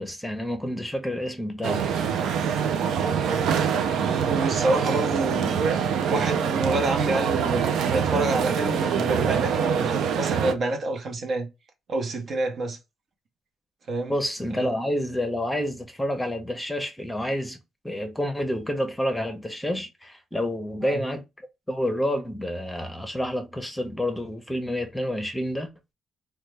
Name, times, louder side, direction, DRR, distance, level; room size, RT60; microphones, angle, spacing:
voice 1, 0.0-2.0 14.1-17.6 17.8-21.2 21.7-25.7, left 1 dB, 10° left, 0.7 m, -29 dB
sound 1, 1.6-10.5, right 7 dB, 80° right, 0.4 m, -24 dB
voice 2, 3.5-5.6 6.1-11.5 11.9-12.8 13.9-14.1 14.6-14.7 20.8-21.0, right 2 dB, 55° right, 0.8 m, -28 dB
3.2 x 2.2 x 3.2 m
cardioid pair, 90°, 0 cm